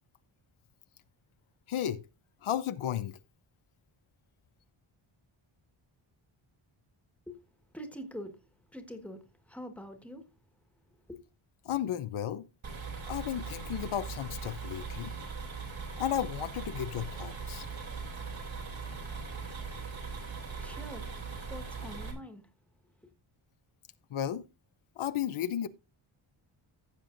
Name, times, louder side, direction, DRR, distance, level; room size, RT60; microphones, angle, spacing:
voice 1, 1.7-2.0 2.4-3.2 11.6-12.5 13.1-15.1 16.0-17.7 24.1-24.5 25.0-25.7, left 10 dB, 75° left, 0.7 m, -33 dB
voice 2, 7.7-8.4 8.7-10.2 11.1-11.2 20.0-21.1 21.5-22.4 23.0-23.1, equal, 5° left, 1.5 m, -45 dB
sound 1, 12.6-22.1, right 4 dB, 65° right, 3.2 m, -40 dB
15.0 x 7.5 x 2.6 m
wide cardioid pair, 160°, 50 cm